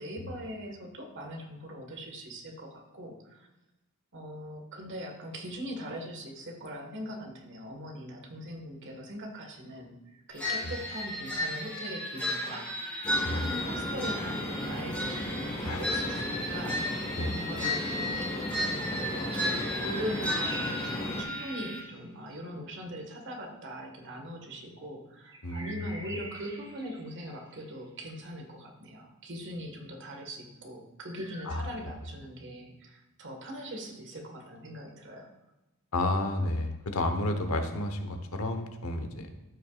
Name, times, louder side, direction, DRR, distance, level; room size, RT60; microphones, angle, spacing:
voice 1, 0.0-3.5 4.1-12.9 13.3-18.5 18.9-35.3, equal, 60° right, 2 dB, 1.5 m, -41 dB
sound 1, 10.4-21.8, left 1 dB, 5° left, 2.4 m, -34 dB
sound 2, 13.0-21.2, left 1 dB, 25° left, 1.4 m, -36 dB
voice 2, 15.6-16.0 17.1-17.4 25.4-26.1 31.5-31.7 35.9-39.3, left 1 dB, 75° left, 6 dB, 1.0 m, -31 dB
sound 3, 16.4-17.3 20.0-22.4 25.3-27.9 31.1-31.6, right 2 dB, 20° right, 1.1 m, -46 dB
13.0 x 5.9 x 2.4 m, 1.0 s
head